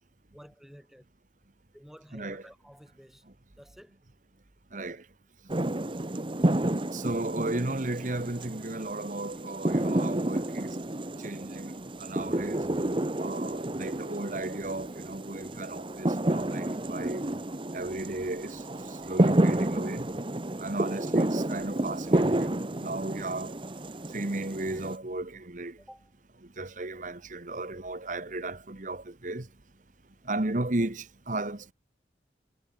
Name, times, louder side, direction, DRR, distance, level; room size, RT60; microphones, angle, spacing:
voice 1, 0.3-1.1 1.7-3.3 3.6-4.0 25.8-26.1, equal, ahead, 4.7 m, -52 dB
voice 2, 2.1-2.4 4.7-5.0 6.9-10.8 11.2-12.6 13.2-17.2 17.7-18.6 19.1-20.1 20.6-23.5 24.1-25.8 26.6-29.5 30.3-31.7, right 2 dB, 45° right, 1.4 m, -34 dB
sound 1, 5.5-25.0, right 1 dB, 30° right, 0.9 m, -30 dB
head